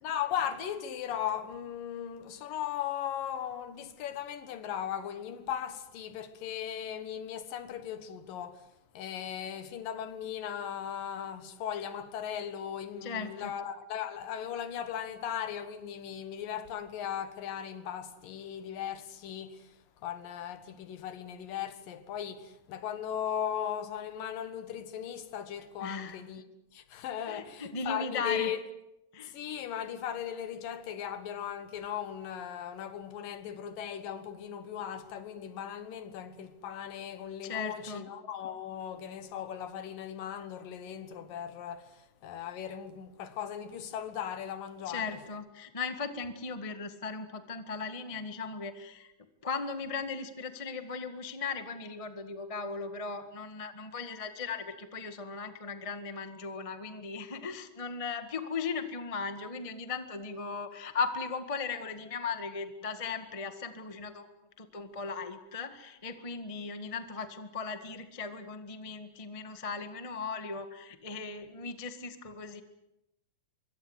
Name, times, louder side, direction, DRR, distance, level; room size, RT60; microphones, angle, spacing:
voice 1, 0.0-8.7 8.9-26.4 26.7-28.6 29.2-45.2, left 9 dB, 75° left, 3.1 m, -37 dB
voice 2, 13.0-13.5 25.8-26.2 27.3-28.5 29.1-29.3 37.4-38.0 44.9-49.1 49.4-64.3 64.6-72.6, left 4 dB, 40° left, 0.4 m, -37 dB
25.0 x 23.5 x 8.1 m
omnidirectional pair, 4.0 m